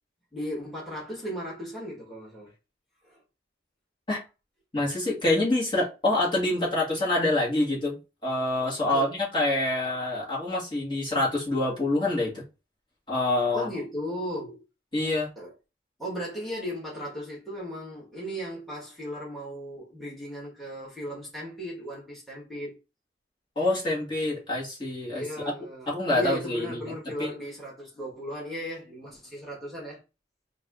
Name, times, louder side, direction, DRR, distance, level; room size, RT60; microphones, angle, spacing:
voice 1, 0.3-2.5 3.0-3.2 8.9-9.1 13.5-14.6 15.3-15.5 16.0-22.8 25.1-30.0, equal, ahead, 1.7 m, -36 dB
voice 2, 4.7-8.0 8.2-12.4 13.1-13.7 14.9-15.3 23.6-25.2 25.9-26.9 27.2-27.3, left 2 dB, 25° left, 2.0 m, -26 dB
4.0 x 2.7 x 3.7 m
head